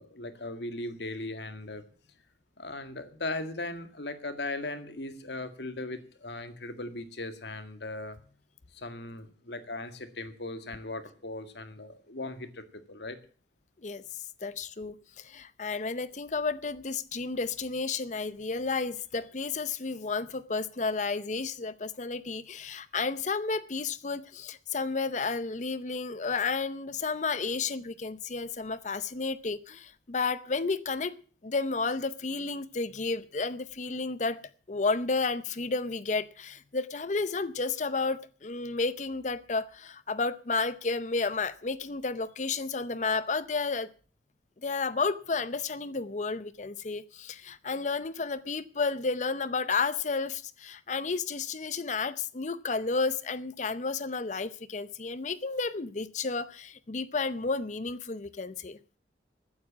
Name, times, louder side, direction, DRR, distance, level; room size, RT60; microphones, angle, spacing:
voice 1, 0.0-1.8 2.6-8.2 8.7-13.2, left 2 dB, 70° left, 1.9 m, -38 dB
voice 2, 14.4-31.1 31.4-43.9 44.6-58.8, left 4 dB, 40° left, 0.7 m, -32 dB
14.5 x 9.6 x 7.4 m
head